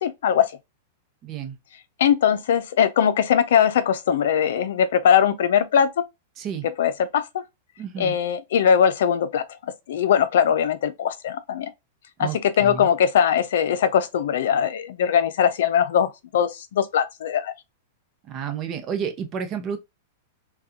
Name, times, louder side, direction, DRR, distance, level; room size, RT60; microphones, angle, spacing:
voice 1, 0.0-0.5 2.0-6.0 6.8-7.4 8.0-11.7 12.2-17.5, left 8 dB, 75° left, 0.5 m, -21 dB
voice 2, 1.2-1.6 6.4-6.7 7.8-8.1 12.2-12.9 18.3-19.8, right 7 dB, 30° right, 0.6 m, -31 dB
3.6 x 2.3 x 2.7 m
supercardioid pair, 150°, 0 cm